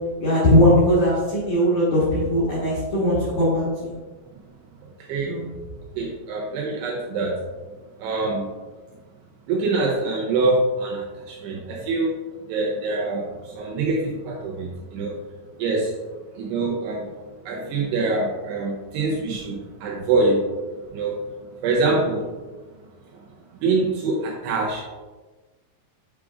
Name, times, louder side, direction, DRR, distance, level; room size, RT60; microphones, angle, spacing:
voice 1, 0.2-3.9 5.3-5.5, equal, 70° left, -9 dB, 1.8 m, -19 dB
voice 2, 6.0-7.4 8.0-8.5 9.5-12.1 12.5-13.2 13.5-15.1 15.6-15.9 16.4-17.1 17.5-20.4 20.9-21.2 21.6-22.3 23.6-24.8, right 3 dB, 85° right, -2 dB, 2.4 m, -24 dB
8.6 x 4.7 x 2.4 m, 1.3 s
omnidirectional pair, 5.4 m